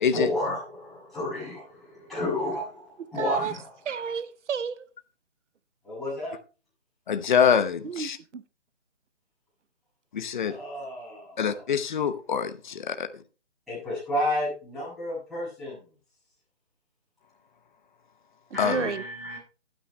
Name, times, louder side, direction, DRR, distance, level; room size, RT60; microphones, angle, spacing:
voice 1, 0.1-3.7 5.8-6.3 10.5-11.6 13.7-15.8 18.5-19.4, left 1 dB, ahead, 6.7 m, -31 dB
voice 2, 3.2-3.5 3.9-4.9 7.8-8.1 8.3-8.4 18.6-19.0, right 6 dB, 80° right, 0.8 m, -31 dB
voice 3, 7.1-8.2 10.1-10.5 11.4-13.1 18.6-18.9, left 7 dB, 40° left, 0.8 m, -25 dB
20.0 x 9.0 x 2.2 m
figure-of-eight pair, 155°, 36 cm